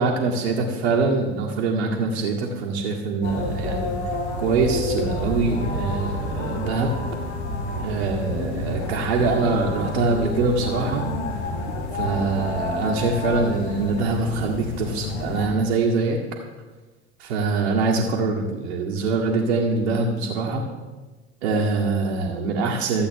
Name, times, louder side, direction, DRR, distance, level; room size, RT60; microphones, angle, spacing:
voice 1, 0.0-4.0 4.4-6.9 7.8-11.0 11.9-16.2 17.2-20.6 21.4-23.1, right 3 dB, 75° right, -3 dB, 1.5 m, -24 dB
sound 1, 3.2-15.5, left 2 dB, 80° left, 1.6 m, -29 dB
13.0 x 8.0 x 4.5 m, 1.3 s
hypercardioid pair, 75°, 33 cm